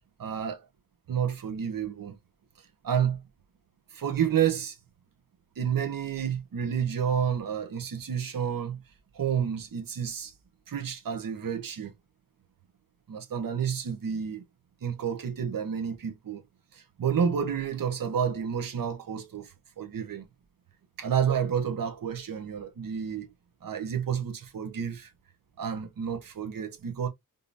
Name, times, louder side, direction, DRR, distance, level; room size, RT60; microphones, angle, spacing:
voice 1, 0.2-0.6 1.1-2.2 2.8-3.2 3.9-4.8 5.6-8.8 9.1-10.3 10.7-11.9 13.1-14.4 14.8-16.4 16.7-20.2 21.0-23.3 23.6-25.1 25.6-27.1, right 8 dB, 70° right, 1.0 m, -30 dB
5.1 x 2.7 x 2.5 m
wide cardioid pair, 145°, 34 cm